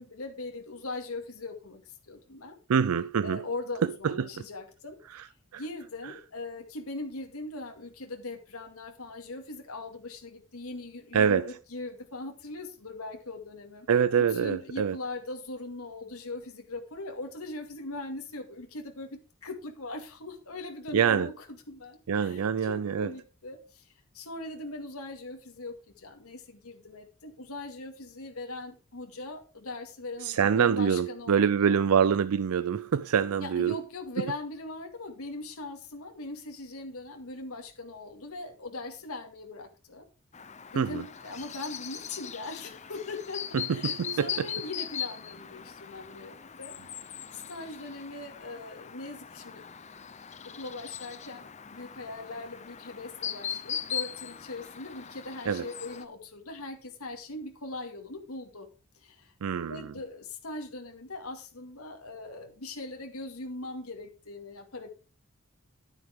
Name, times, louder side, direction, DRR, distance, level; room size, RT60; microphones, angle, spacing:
voice 1, 0.0-2.6 3.2-5.0 5.5-13.9 14.3-31.8 33.4-40.1 40.7-46.9 47.3-49.6 50.4-58.7 58.9-59.3 59.7-64.9, left 2 dB, 85° left, 2.2 m, -40 dB
voice 2, 2.7-3.5 3.8-4.4 5.1-5.3 5.5-5.6 11.1-11.6 13.9-15.0 20.9-21.3 22.1-23.1 30.2-33.8 34.2-34.3 40.7-41.0 43.5-44.5 55.5-55.7 59.4-59.9, right 7 dB, 85° right, 0.4 m, -26 dB
Chirp tweet, 40.3-56.0, left 8 dB, 30° left, 0.7 m, -40 dB
10.5 x 9.6 x 3.6 m
head